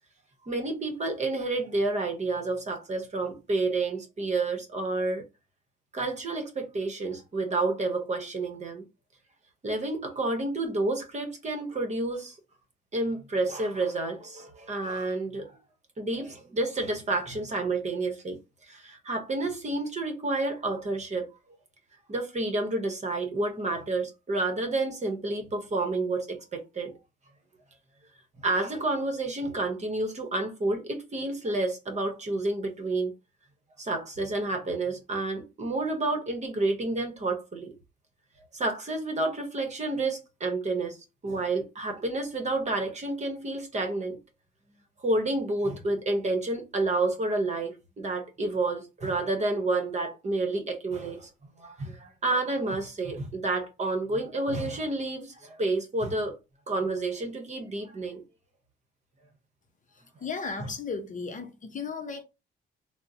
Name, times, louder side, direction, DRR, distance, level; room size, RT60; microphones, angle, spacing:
voice 1, 0.4-5.2 5.9-8.8 9.6-12.4 12.9-15.6 16.0-18.4 18.7-21.3 22.1-26.9 28.4-33.1 33.8-37.7 38.5-41.0 41.2-44.2 45.0-51.3 51.6-56.3 56.7-58.2, right 2 dB, 35° right, 1.0 m, -29 dB
voice 2, 60.2-62.2, left 5 dB, 40° left, 0.6 m, -35 dB
3.6 x 2.1 x 2.6 m
cardioid pair, 90°, 20 cm